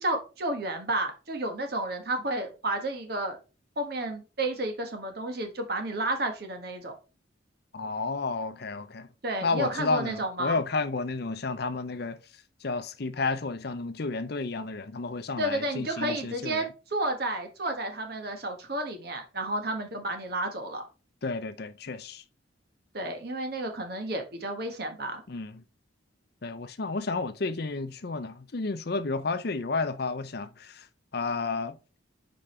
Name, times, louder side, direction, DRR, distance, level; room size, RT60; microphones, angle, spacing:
voice 1, 0.0-3.4 3.8-7.0 9.2-10.6 15.4-16.6 16.9-20.8 22.9-25.2, right 1 dB, 55° right, 1.4 m, -31 dB
voice 2, 7.7-9.1 9.4-12.2 12.6-16.7 21.2-22.2 25.3-25.6 26.4-30.8 31.1-31.8, left 3 dB, 55° left, 0.6 m, -31 dB
5.1 x 5.1 x 4.3 m
head